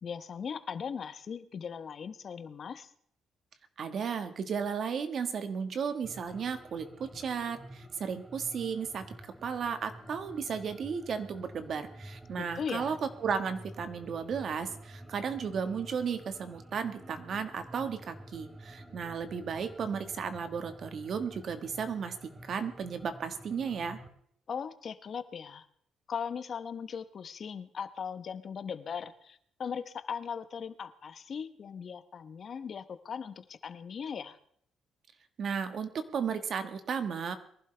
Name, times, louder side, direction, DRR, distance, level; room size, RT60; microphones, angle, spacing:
voice 1, 0.0-2.9 12.4-13.0 24.5-25.6 26.1-34.4, left 7 dB, 50° left, 12 dB, 1.0 m, -39 dB
voice 2, 3.8-9.0 9.4-22.1 22.4-24.0 35.4-37.3, right 6 dB, 60° right, 9 dB, 1.5 m, -34 dB
sound 1, 6.0-24.1, right 1 dB, 15° right, 2.6 m, -50 dB
22.5 x 11.5 x 3.4 m, 0.64 s
cardioid pair, 90°, 0 cm